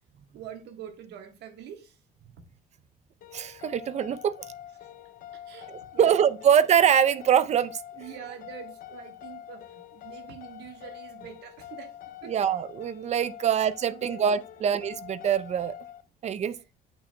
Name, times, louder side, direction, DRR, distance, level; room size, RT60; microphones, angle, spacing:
voice 1, 0.3-2.0 4.8-4.9 5.3-6.3 7.9-11.9 12.2-12.3 13.9-14.3 14.5-14.6 16.5-16.7, right 9 dB, 80° right, 1.4 m, -45 dB
sound 1, 3.2-16.0, left 11 dB, 55° left, 0.6 m, -45 dB
voice 2, 3.3-4.3 5.7-7.8 12.3-15.8 16.2-16.5, right 8 dB, 40° right, 0.5 m, -24 dB
8.2 x 5.9 x 2.2 m
cardioid pair, 110°, 17 cm